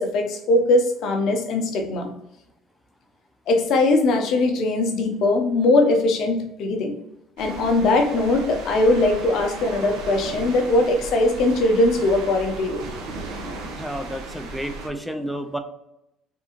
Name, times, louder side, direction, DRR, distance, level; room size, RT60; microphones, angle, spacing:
voice 1, 0.0-2.1 3.5-7.0 7.4-12.8, left 2 dB, 50° left, 3 dB, 0.6 m, -20 dB
sound 1, 7.4-14.9, right 2 dB, 85° right, 0.7 m, -36 dB
voice 2, 13.8-15.6, equal, ahead, 7 dB, 0.3 m, -31 dB
3.5 x 2.6 x 2.9 m, 0.85 s
cardioid pair, 160°, 0 cm